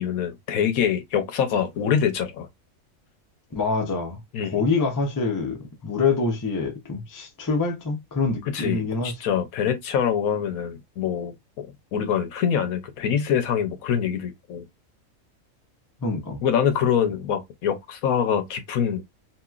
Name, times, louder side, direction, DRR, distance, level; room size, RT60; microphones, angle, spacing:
voice 1, 0.0-2.5 4.3-4.6 8.5-14.6 16.4-19.0, left 8 dB, 80° left, 1.2 m, -25 dB
voice 2, 3.5-9.1 16.0-16.4 17.0-17.1, left 4 dB, 25° left, 0.4 m, -26 dB
3.0 x 2.8 x 2.3 m
omnidirectional pair, 1.5 m